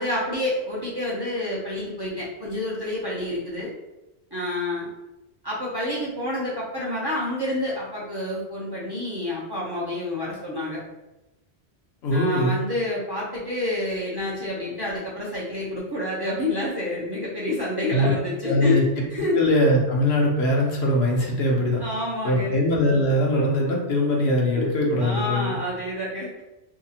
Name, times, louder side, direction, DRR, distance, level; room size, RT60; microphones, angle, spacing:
voice 1, 0.0-3.7 4.3-4.9 5.4-10.8 12.1-18.8 19.1-19.4 21.8-22.5 24.5-24.7 25.0-26.3, left 1 dB, 30° right, -7 dB, 0.5 m, -28 dB
voice 2, 12.0-12.5 17.9-18.1 18.5-21.8 22.2-25.6, left 1 dB, 75° left, -1 dB, 0.9 m, -22 dB
2.7 x 2.4 x 2.7 m, 0.99 s
omnidirectional pair, 1.1 m